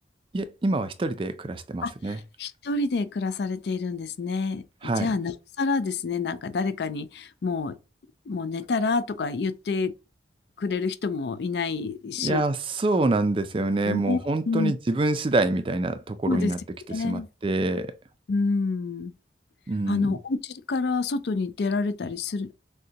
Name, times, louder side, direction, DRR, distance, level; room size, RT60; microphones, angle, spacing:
voice 1, 0.3-2.2 4.8-5.1 12.2-16.6 17.0-17.9 19.7-20.2, right 2 dB, 30° right, 0.4 m, -26 dB
voice 2, 1.8-7.7 8.3-9.9 10.6-12.4 13.9-14.2 14.5-14.7 16.2-16.5 16.9-17.3 18.3-19.1 19.9-22.5, left 4 dB, 65° left, 0.4 m, -28 dB
6.4 x 2.2 x 2.8 m
head